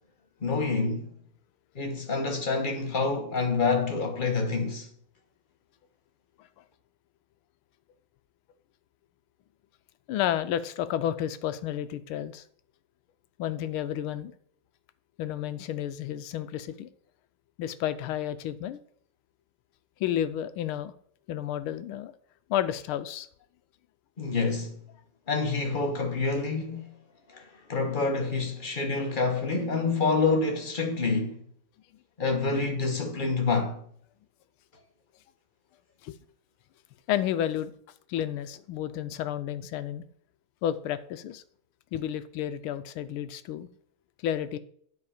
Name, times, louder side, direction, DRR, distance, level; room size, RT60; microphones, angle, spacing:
voice 1, 0.4-1.1 1.7-4.9 24.2-24.8 25.3-26.9 27.3-31.4 32.2-33.8, left 4 dB, 40° left, 0.7 m, -27 dB
voice 2, 10.1-12.4 13.4-14.3 15.2-16.9 17.6-18.8 20.0-20.9 21.3-22.1 22.5-23.3 36.0-36.2 37.1-37.7 38.1-40.0 40.6-41.4 41.9-43.7 44.2-44.6, left 11 dB, 80° left, 1.4 m, -31 dB
9.8 x 4.8 x 4.9 m
omnidirectional pair, 2.4 m